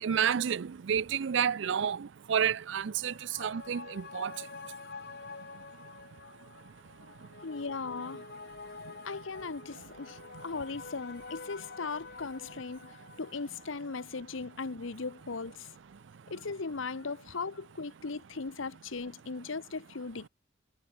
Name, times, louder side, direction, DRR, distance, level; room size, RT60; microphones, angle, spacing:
voice 1, 0.0-3.1 3.4-4.3, right 8 dB, 60° right, 0.4 m, -30 dB
sound 1, 2.7-15.6 15.9-16.0, left 4 dB, 50° left, 1.1 m, -48 dB
voice 2, 7.4-8.2 9.0-15.7 16.3-20.3, left 4 dB, 75° left, 0.9 m, -38 dB
head